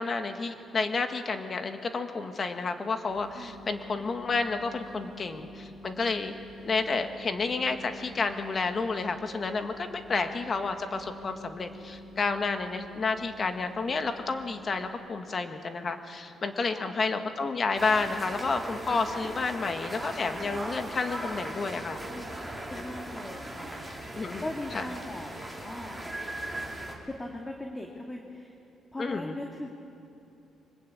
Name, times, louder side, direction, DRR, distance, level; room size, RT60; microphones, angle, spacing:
voice 1, 0.0-6.3 6.6-22.0 24.2-24.4 24.7-24.8 29.0-29.4, left 4 dB, 40° left, 7 dB, 1.8 m, -30 dB
sound 1, 3.1-15.0, equal, 35° right, 5.7 m, -48 dB
sound 2, 17.7-26.9, right 1 dB, ahead, 4.7 m, -38 dB
voice 2, 22.7-23.7 24.0-24.1 24.4-25.3 25.6-26.0 27.1-28.5 28.9-29.7, left 1 dB, 15° left, 1 dB, 2.2 m, -39 dB
23.5 x 20.5 x 8.6 m, 2.9 s
cardioid pair, 90°, 0 cm